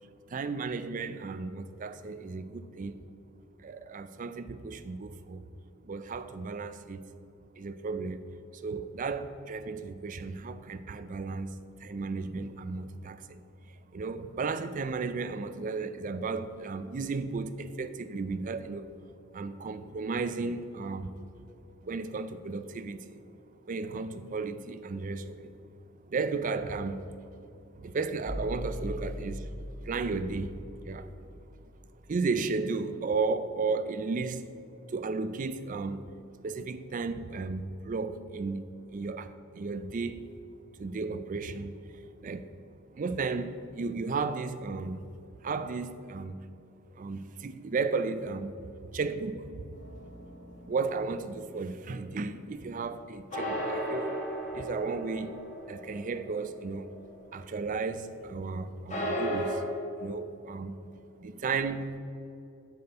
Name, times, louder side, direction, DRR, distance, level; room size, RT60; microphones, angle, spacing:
voice 1, 0.3-3.0 3.6-5.4 5.8-7.0 7.6-8.2 8.5-18.9 19.3-21.1 21.8-23.2 23.7-25.5 26.1-27.0 27.3-27.4 27.8-29.5 29.8-31.1 32.1-34.4 34.9-36.0 36.4-38.6 38.9-40.2 40.8-42.5 42.9-45.1 45.4-46.4 46.9-49.7 50.7-54.2 54.5-55.4 55.7-56.9 57.3-59.6 60.0-60.8 61.2-62.0, right 4 dB, 35° right, 0.4 m, -34 dB
sound 1, 28.2-32.1, equal, 10° left, 1.4 m, -40 dB
sound 2, 49.7-51.2 53.3-57.4 57.7-57.8 58.9-59.5, equal, 35° left, 1.6 m, -35 dB
8.3 x 5.3 x 6.6 m
head